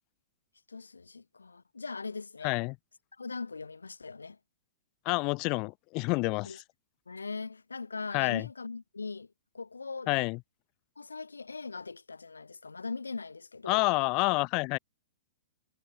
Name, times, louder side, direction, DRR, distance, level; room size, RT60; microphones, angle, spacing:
voice 1, 0.7-2.6 3.2-4.4 6.4-6.6 7.1-10.1 11.0-13.9, left 4 dB, 85° left, 2.7 m, -40 dB
voice 2, 2.4-2.7 5.1-6.6 8.1-8.5 10.1-10.4 13.7-14.8, left 28 dB, 40° left, 1.9 m, -28 dB
figure-of-eight pair, 110°, 0 cm